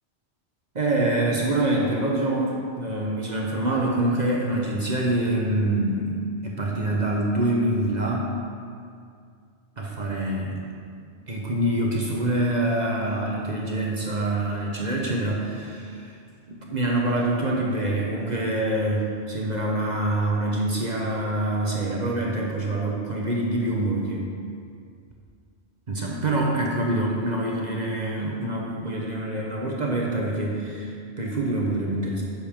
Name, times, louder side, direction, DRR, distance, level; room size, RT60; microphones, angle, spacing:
voice 1, 0.7-8.3 9.8-10.7 11.3-16.1 16.5-24.3 25.9-32.2, right 1 dB, 40° right, -2 dB, 1.0 m, -25 dB
10.0 x 6.7 x 3.6 m, 2.3 s
omnidirectional pair, 1.2 m